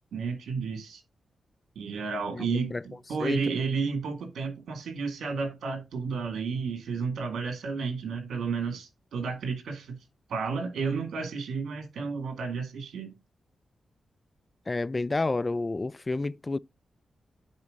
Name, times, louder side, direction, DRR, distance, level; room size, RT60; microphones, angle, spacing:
voice 1, 0.1-1.0 1.8-10.0 10.3-13.1, right 5 dB, 85° right, 2.0 m, -32 dB
voice 2, 2.3-2.8 3.2-3.6 14.7-16.6, left 2 dB, 30° left, 0.3 m, -30 dB
9.6 x 4.3 x 3.8 m
cardioid pair, 55°, 0 cm